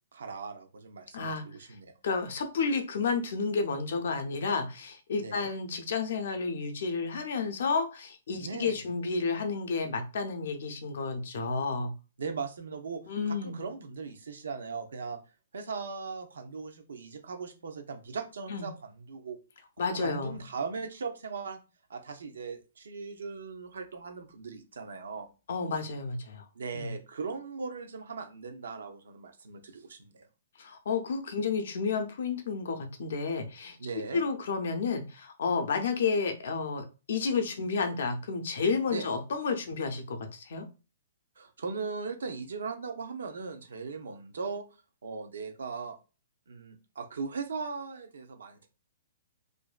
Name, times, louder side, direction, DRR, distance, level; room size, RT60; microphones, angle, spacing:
voice 1, 0.1-1.9 5.2-5.5 8.4-8.9 12.2-15.2 15.5-19.4 19.9-21.6 21.9-25.3 26.5-30.3 33.8-34.2 38.9-39.1 41.4-44.6 45.0-46.0 46.5-48.7, right 5 dB, 90° right, 6 dB, 0.6 m, -39 dB
voice 2, 1.1-1.4 2.0-11.9 13.1-13.6 18.5-18.7 19.8-20.4 25.5-26.5 26.7-26.9 30.6-33.8 34.1-40.7, left 4 dB, 60° left, 6 dB, 0.5 m, -31 dB
2.5 x 2.2 x 2.4 m, 0.32 s
hypercardioid pair, 170°, 0 cm